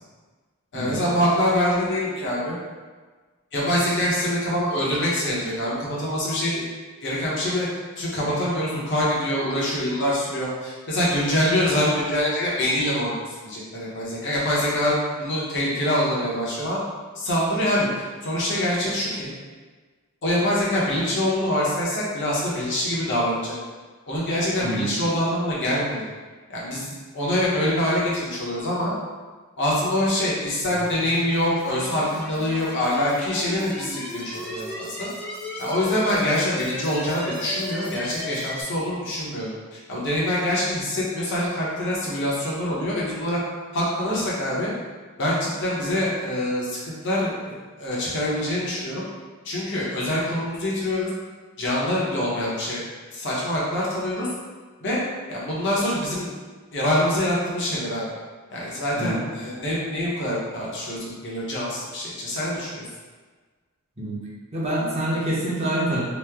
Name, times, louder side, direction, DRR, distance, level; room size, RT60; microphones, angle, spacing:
voice 1, 0.7-2.6 3.5-6.7 7.0-7.7 8.0-16.8 17.2-17.9 18.2-19.3 20.2-23.6 24.1-26.1 26.5-28.9 29.6-35.1 35.6-43.4 43.7-44.7 45.2-49.0 49.4-51.1 51.6-52.8 53.1-54.3 54.8-55.0 55.3-56.3 56.7-58.1 58.5-62.8, left 1 dB, 55° left, -6 dB, 0.8 m, -25 dB
sound 1, 30.6-38.6, left 1 dB, 5° left, 0.7 m, -36 dB
voice 2, 58.9-59.3 64.0-64.2 64.5-66.0, right 1 dB, 30° right, -6 dB, 0.8 m, -26 dB
3.0 x 2.0 x 3.5 m, 1.4 s
head